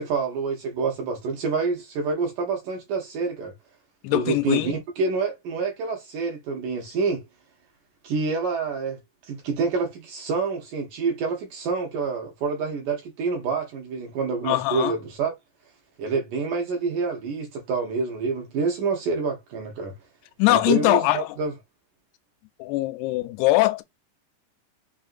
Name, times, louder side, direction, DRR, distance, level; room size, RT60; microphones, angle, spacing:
voice 1, 0.0-3.5 4.1-7.2 8.0-9.0 9.3-15.3 16.0-19.9 20.5-21.5, right 4 dB, 70° right, 2.0 m, -27 dB
voice 2, 4.0-4.7 14.4-14.9 20.4-21.4 22.6-23.8, left 18 dB, 90° left, 2.5 m, -22 dB
5.8 x 2.5 x 2.4 m
omnidirectional pair, 4.5 m